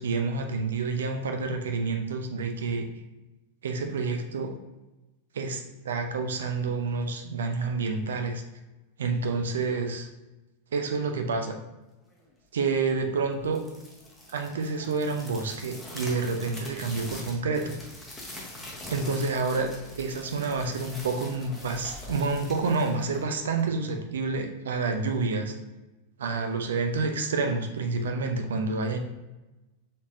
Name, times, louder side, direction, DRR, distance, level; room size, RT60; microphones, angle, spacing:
voice 1, 0.0-2.8 3.6-4.6 5.3-8.4 9.0-10.1 10.7-11.6 12.5-13.6 14.3-17.7 18.9-19.7 20.0-25.5 26.2-29.0, right 4 dB, 65° right, 5 dB, 0.5 m, -28 dB
sound 1, 13.4-23.8, left 1 dB, 10° left, 1.0 m, -43 dB
4.1 x 3.4 x 2.5 m, 1.1 s
figure-of-eight pair, 90°, 0 cm